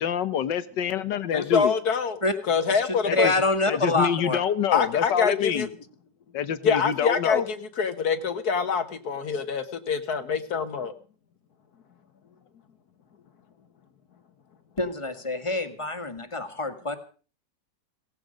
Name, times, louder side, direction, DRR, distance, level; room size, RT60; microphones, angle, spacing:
voice 1, 0.0-1.7 3.1-3.3 3.7-5.7 6.3-7.4, left 8 dB, 85° left, 14 dB, 1.7 m, -26 dB
voice 2, 1.3-2.2 2.4-3.3 4.7-5.7 6.6-10.9, left 6 dB, 65° left, 10 dB, 1.8 m, -25 dB
voice 3, 3.1-4.4 14.8-17.0, left 2 dB, 20° left, 9 dB, 1.7 m, -26 dB
17.5 x 15.5 x 5.2 m, 0.39 s
omnidirectional pair, 1.9 m